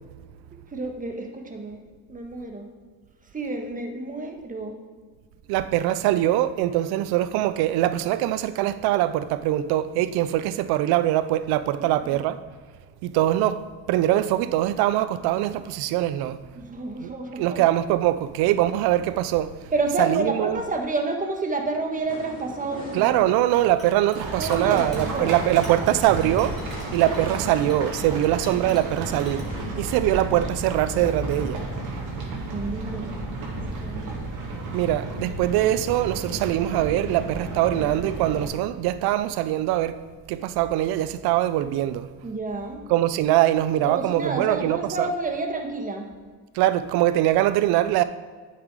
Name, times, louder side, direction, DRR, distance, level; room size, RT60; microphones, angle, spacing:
voice 1, 0.7-1.8 2.1-2.7 3.3-4.7 12.0-12.2 16.5-17.7 19.7-23.1 24.4-25.5 32.5-33.2 33.6-34.2 42.2-42.9 43.9-46.1, right 3 dB, 20° right, 1.5 m, -30 dB
voice 2, 5.5-12.4 13.0-13.5 13.9-16.4 17.0-17.1 17.4-19.5 20.0-20.6 22.9-26.5 26.9-29.4 29.8-31.6 34.7-40.0 40.3-42.1 42.9-45.1 46.6-48.0, right 13 dB, 80° right, 0.6 m, -22 dB
sound 1, 22.0-29.8, left 1 dB, 20° left, 2.4 m, -42 dB
Chink clink, 23.6-29.4, equal, ahead, 3.0 m, -48 dB
sound 2, 24.1-38.5, right 2 dB, 55° right, 2.6 m, -32 dB
9.0 x 7.1 x 4.8 m
cardioid pair, 105°, 37 cm